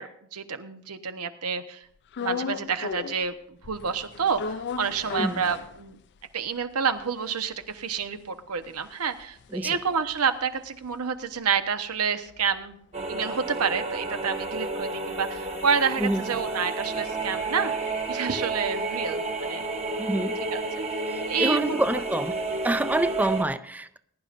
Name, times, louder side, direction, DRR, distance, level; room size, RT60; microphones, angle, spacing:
voice 1, 0.0-1.9 2.2-6.0 6.3-12.8 13.1-17.7 18.1-19.6 20.5-20.6 21.2-22.0, right 6 dB, 85° right, 9 dB, 1.0 m, -29 dB
sound 1, 2.1-3.3 3.6-6.2 6.6-6.7 6.9-11.4 11.7-15.8, left 5 dB, 55° left, 0.4 m, -38 dB
sound 2, 12.9-23.4, right 2 dB, 30° right, 1.1 m, -31 dB
voice 2, 20.0-20.3 21.1-22.4 22.6-24.0, right 1 dB, 5° right, 12 dB, 0.5 m, -27 dB
20.5 x 11.0 x 2.6 m, 0.65 s
head